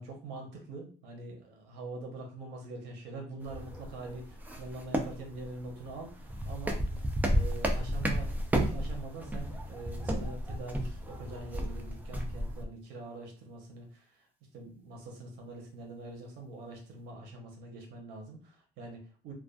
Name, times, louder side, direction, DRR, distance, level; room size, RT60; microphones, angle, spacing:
voice 1, 0.0-6.8 7.3-14.3 14.5-19.3, right 2 dB, 85° right, 2 dB, 0.8 m, -44 dB
sound 1, 3.4-12.6, equal, 10° right, 0.4 m, -33 dB
2.4 x 2.3 x 2.3 m, 0.39 s
cardioid pair, 110°, 17 cm